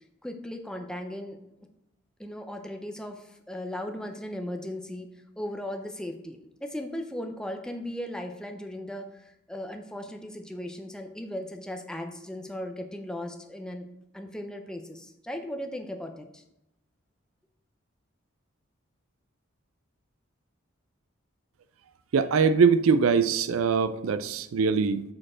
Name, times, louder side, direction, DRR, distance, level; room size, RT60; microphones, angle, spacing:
voice 1, 0.2-1.4 2.2-5.1 5.4-13.9 14.1-16.4, left 1 dB, 5° left, 4 dB, 0.5 m, -37 dB
voice 2, 22.1-25.0, right 5 dB, 90° right, 13 dB, 0.4 m, -22 dB
7.6 x 4.4 x 4.3 m, 0.88 s
head